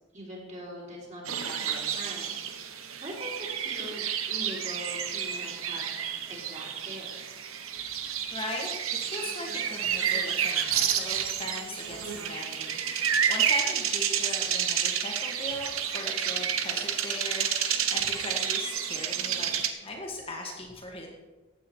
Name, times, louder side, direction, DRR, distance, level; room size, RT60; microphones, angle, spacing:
voice 1, 0.1-2.3 2.6-5.9 6.3-7.2, equal, 35° right, -3 dB, 3.9 m, -42 dB
sound 1, 1.3-19.7, right 8 dB, 85° right, 1.0 m, -30 dB
voice 2, 8.0-21.1, left 1 dB, 25° left, -1 dB, 1.7 m, -39 dB
15.0 x 9.0 x 4.6 m, 1.2 s
head